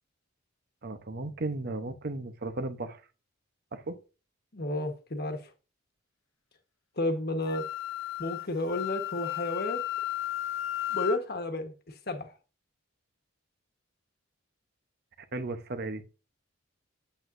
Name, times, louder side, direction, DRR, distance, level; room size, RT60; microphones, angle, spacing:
voice 1, 0.8-3.0 3.7-4.0 15.3-16.0, right 2 dB, 50° right, 0.9 m, -35 dB
voice 2, 4.5-5.5 7.0-7.7 8.2-9.8 10.9-12.3, left 2 dB, 50° left, 1.4 m, -32 dB
Wind instrument woodwind instrument, 7.4-11.2, left 14 dB, 70° left, 0.7 m, -34 dB
8.6 x 8.0 x 2.6 m
head